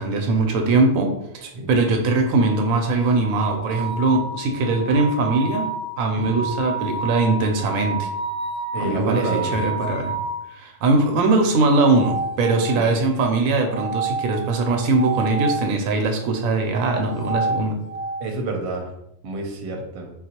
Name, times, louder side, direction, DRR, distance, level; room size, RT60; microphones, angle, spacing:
voice 1, 0.0-5.7 6.0-8.1 8.8-10.2 10.5-17.8, right 3 dB, 90° right, 3 dB, 1.0 m, -21 dB
sound 1, 2.3-10.4 11.7-12.9 13.7-15.7 16.9-18.2, right 3 dB, 10° right, 0.8 m, -30 dB
voice 2, 8.7-9.5 12.7-12.9 18.2-18.9 19.2-20.1, right 2 dB, 60° right, 2 dB, 0.9 m, -28 dB
3.9 x 2.3 x 2.8 m, 0.79 s
omnidirectional pair, 1.4 m